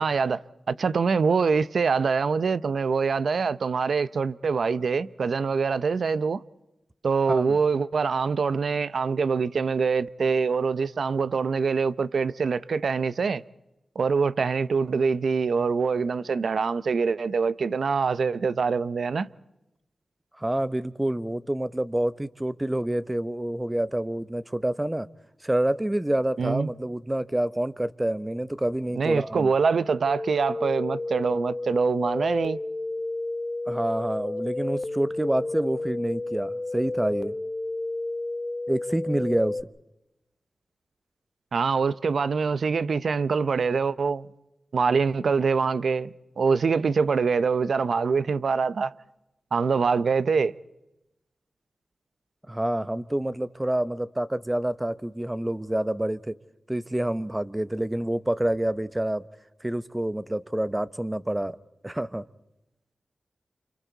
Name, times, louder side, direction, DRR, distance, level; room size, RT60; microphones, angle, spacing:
voice 1, 0.0-6.4 7.0-13.4 13.9-19.3 26.4-26.7 28.9-32.6 41.5-44.3 44.7-48.9 49.5-50.5, right 5 dB, 75° right, 0.7 m, -24 dB
voice 2, 7.3-7.6 20.4-25.1 25.4-29.5 33.7-37.3 38.7-39.6 52.5-56.4 56.7-59.2 59.6-61.6 61.8-62.2, right 1 dB, 15° right, 1.0 m, -27 dB
sound 1, 30.1-39.6, left 2 dB, 30° left, 0.8 m, -31 dB
29.5 x 28.0 x 4.1 m
wide cardioid pair, 80°, 0 cm